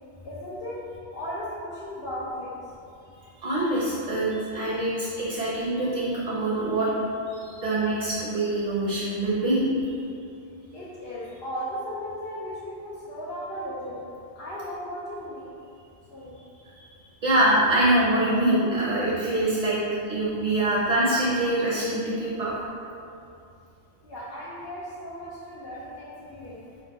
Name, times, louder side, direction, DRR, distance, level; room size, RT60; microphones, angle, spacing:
voice 1, 0.2-0.8 1.1-2.5 10.7-14.0 14.4-15.5 16.1-16.3 24.0-26.6, equal, 60° left, -9 dB, 0.9 m, -36 dB
voice 2, 3.4-6.9 7.3-10.0 17.2-19.8 20.1-22.5, right 1 dB, 40° right, -7 dB, 0.8 m, -24 dB
4.0 x 2.3 x 4.5 m, 2.6 s
omnidirectional pair, 1.2 m